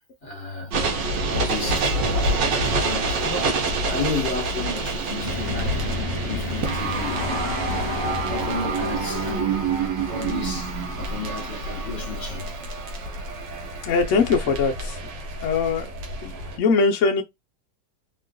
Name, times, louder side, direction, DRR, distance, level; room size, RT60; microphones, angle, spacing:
voice 1, 0.2-0.7 1.3-1.9 2.3-5.8 6.2-7.2 7.6-9.5 10.1-12.5, left 3 dB, 40° left, 1.6 m, -33 dB
sound 1, 0.7-16.6, right 3 dB, 70° right, 1.5 m, -27 dB
sound 2, 5.2-11.8, left 2 dB, 90° left, 0.3 m, -33 dB
voice 2, 13.8-15.0 15.4-15.9 16.2-17.2, left 4 dB, 60° left, 0.8 m, -21 dB
3.7 x 2.4 x 2.2 m
omnidirectional pair, 2.0 m